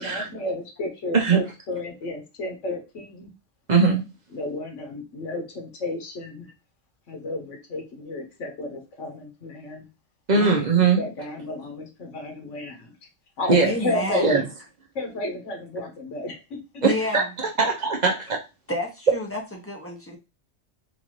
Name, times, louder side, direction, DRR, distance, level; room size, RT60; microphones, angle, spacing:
voice 1, 0.0-3.3 4.3-6.5 7.1-9.9 11.0-12.9 13.4-14.5 14.9-16.4, left 2 dB, 90° left, 3 dB, 1.3 m, -32 dB
voice 2, 3.7-4.0 10.3-11.0 13.5-13.7 14.2-14.4 16.8-18.4, right 4 dB, 45° right, 2 dB, 0.6 m, -20 dB
voice 3, 13.5-14.3 16.8-17.3 18.7-20.2, left 1 dB, 15° left, 0 dB, 0.5 m, -30 dB
3.9 x 2.6 x 3.0 m, 0.28 s
omnidirectional pair, 1.2 m